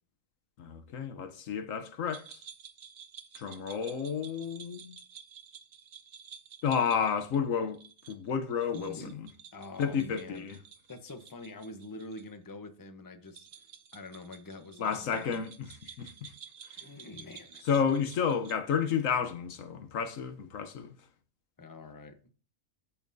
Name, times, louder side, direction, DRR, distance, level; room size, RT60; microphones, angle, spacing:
voice 1, 0.6-2.4 3.3-5.0 6.6-7.8 8.1-9.3 9.8-10.6 14.8-16.3 16.7-16.8 17.6-21.0, left 7 dB, 80° left, 1.3 m, -31 dB
sound 1, 2.1-12.2 12.5-12.6 13.3-19.0, right 8 dB, 75° right, 1.2 m, -52 dB
voice 2, 8.7-9.1 9.5-10.4 10.9-13.6 13.9-15.4 16.8-17.6 21.6-22.2, left 2 dB, 20° left, 0.8 m, -45 dB
13.5 x 5.7 x 2.7 m
omnidirectional pair, 1.3 m